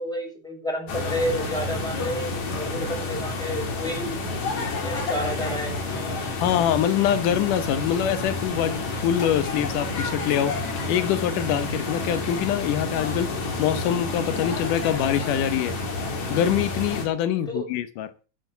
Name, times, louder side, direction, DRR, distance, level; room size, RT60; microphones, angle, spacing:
voice 1, 0.0-4.2 4.7-6.0 17.5-17.7, equal, ahead, 6.0 m, -30 dB
sound 1, 0.9-17.1, left 3 dB, 65° left, 4.0 m, -29 dB
voice 2, 6.4-13.3 13.6-15.7 16.3-18.1, left 10 dB, 85° left, 2.5 m, -24 dB
12.5 x 9.3 x 6.8 m
omnidirectional pair, 3.6 m